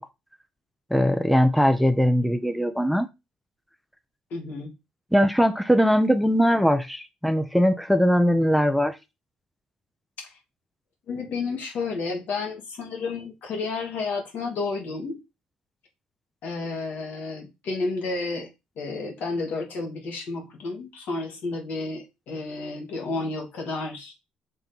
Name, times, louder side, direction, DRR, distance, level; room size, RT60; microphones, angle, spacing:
voice 1, 0.9-3.1 5.1-9.0, equal, ahead, 0.9 m, -20 dB
voice 2, 4.3-4.7 10.2-10.3 11.1-15.2 16.4-18.5 18.8-24.1, left 3 dB, 70° left, 2.5 m, -31 dB
5.7 x 3.6 x 5.4 m
hypercardioid pair, 60°, 3 cm